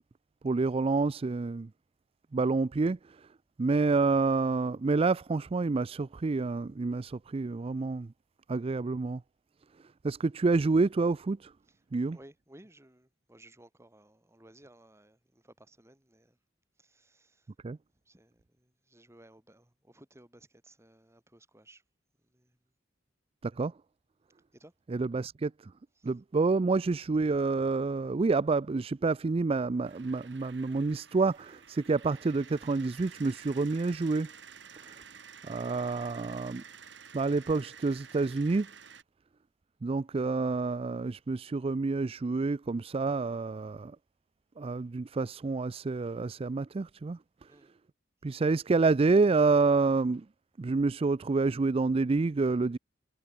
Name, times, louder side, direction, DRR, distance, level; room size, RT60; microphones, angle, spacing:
voice 1, 0.4-1.7 2.3-3.0 3.6-8.1 8.5-9.2 10.0-11.5 11.9-12.2 17.6-17.8 23.4-23.7 24.9-25.5 26.0-34.3 35.4-36.6 37.1-38.7 39.8-43.9 44.6-47.2 48.2-50.2 50.6-52.8, right 3 dB, 30° right, 0.4 m, -28 dB
voice 2, 11.7-16.4 16.8-17.5 18.1-21.8 22.3-22.5 24.5-24.7 26.0-26.1 47.5-47.7, right 1 dB, 15° right, 2.6 m, -58 dB
sound 1, 29.8-39.0, right 7 dB, 70° right, 4.2 m, -51 dB
head